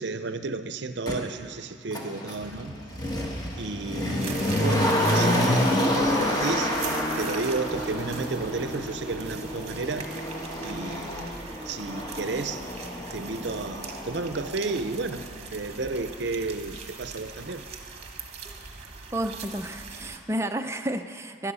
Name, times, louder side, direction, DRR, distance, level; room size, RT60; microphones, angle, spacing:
voice 1, 0.0-2.8 3.5-10.1 10.6-11.2 11.7-12.7 13.1-17.6, right 3 dB, 60° right, 11 dB, 0.6 m, -32 dB
Motor vehicle (road), 1.1-1.2 1.9-14.8 15.1-15.2, left 1 dB, 20° left, 1.4 m, -28 dB
sound 1, 4.2-20.2, right 4 dB, 35° right, 1.1 m, -41 dB
voice 2, 19.1-21.5, right 1 dB, 15° right, 6 dB, 0.5 m, -31 dB
17.5 x 11.5 x 5.6 m, 2.4 s
head